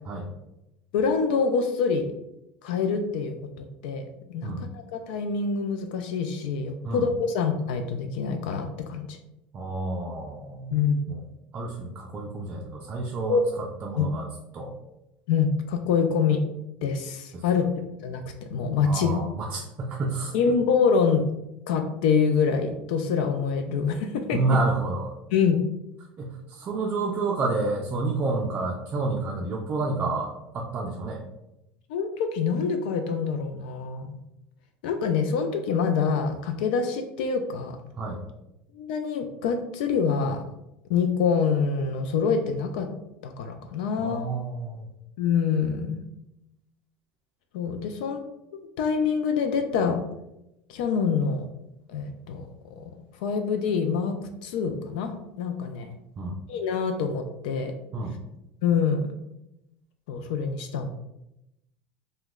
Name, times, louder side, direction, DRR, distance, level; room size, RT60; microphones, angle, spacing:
voice 1, 0.9-2.1 2.6-9.2 10.7-11.0 13.3-13.4 14.0-14.1 15.3-16.4 16.8-17.6 18.0-18.2 18.5-19.2 20.3-21.3 21.7-24.4 25.3-25.6 31.9-34.2 34.8-37.8 38.7-40.4 40.9-42.9 43.2-44.3 45.2-46.0 47.5-48.2 48.5-50.0 50.7-51.5 51.9-52.5 52.8-52.9 53.2-55.9 56.5-57.7 58.6-59.1 60.1-60.9, left 5 dB, 85° left, 6 dB, 0.4 m, -26 dB
voice 2, 9.5-10.8 11.1-11.2 11.5-14.3 14.5-14.7 17.3-17.4 18.8-20.3 24.3-25.2 26.2-31.2 38.0-38.2 44.0-44.9 56.2-56.4 57.9-58.2, right 3 dB, 30° right, -1 dB, 0.4 m, -29 dB
2.9 x 2.2 x 3.5 m, 0.86 s
cardioid pair, 145°, 5 cm